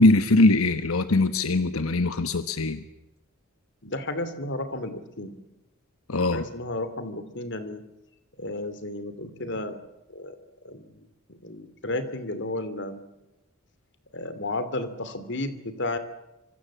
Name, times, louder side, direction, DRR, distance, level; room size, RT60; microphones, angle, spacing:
voice 1, 0.0-2.8 6.1-6.4, left 2 dB, 85° left, 10 dB, 1.3 m, -21 dB
voice 2, 3.8-5.4 6.3-7.8 8.4-9.8 10.1-10.4 10.6-13.0 14.1-16.0, left 2 dB, 55° left, 12 dB, 2.9 m, -33 dB
25.5 x 25.0 x 7.4 m, 0.96 s
head